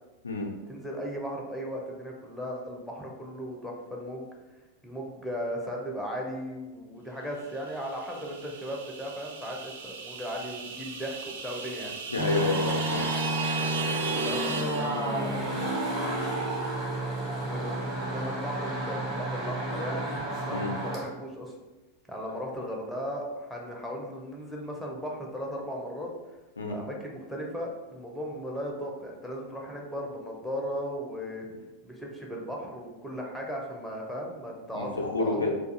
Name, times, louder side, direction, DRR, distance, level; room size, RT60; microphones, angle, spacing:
voice 1, 0.7-4.3 4.8-11.9 14.1-15.6 17.3-21.5 22.1-26.1 26.7-31.5 31.8-34.9 35.2-35.5, equal, ahead, -2 dB, 0.5 m, -36 dB
sound 1, 7.6-15.6, right 5 dB, 60° right, 0.4 m, -37 dB
voice 2, 12.1-13.1 20.5-20.8 26.6-26.8 34.7-35.5, left 2 dB, 75° left, 0 dB, 0.4 m, -29 dB
sound 2, 12.2-21.0, right 1 dB, 30° right, 0.9 m, -31 dB
2.4 x 2.3 x 2.7 m, 1.1 s
figure-of-eight pair, 90°, 0 cm